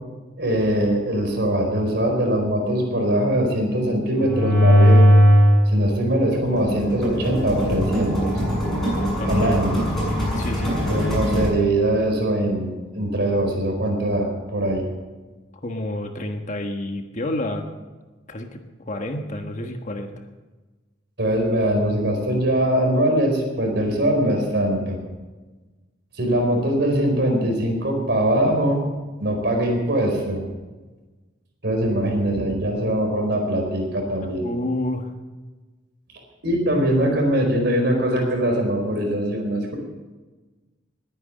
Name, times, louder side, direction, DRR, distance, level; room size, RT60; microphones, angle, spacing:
voice 1, 0.4-5.0 5.6-8.3 9.3-9.8 10.9-14.8 21.2-25.0 26.1-28.8 29.2-30.4 31.6-34.5 36.4-39.8, right 1 dB, 60° right, 2 dB, 4.7 m, -22 dB
sound 1, 4.2-5.6 6.0-11.5, equal, ahead, 7.1 m, -19 dB
voice 2, 9.2-9.5 10.3-10.7 15.6-17.6 18.3-20.1 34.4-35.1, left 1 dB, 40° left, 4 dB, 1.5 m, -29 dB
20.0 x 9.8 x 6.5 m, 1.3 s
head